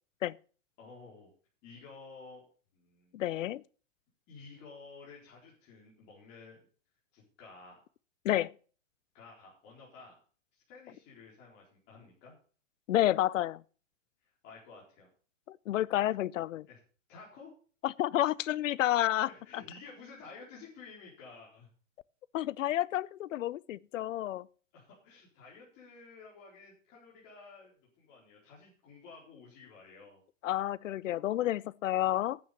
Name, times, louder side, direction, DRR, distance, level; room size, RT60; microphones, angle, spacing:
voice 1, 0.8-1.3 1.6-2.4 2.7-3.2 4.3-6.6 7.1-7.8 9.1-10.2 10.5-12.3 14.4-15.1 16.6-16.8 17.1-17.5 19.2-21.7 24.7-30.2, left 4 dB, 30° left, 4.2 m, -52 dB
voice 2, 3.1-3.6 8.2-8.5 12.9-13.6 15.5-16.7 17.8-19.6 22.3-24.5 30.4-32.4, left 13 dB, 75° left, 0.6 m, -30 dB
9.0 x 9.0 x 6.7 m
hypercardioid pair, 160°, 38 cm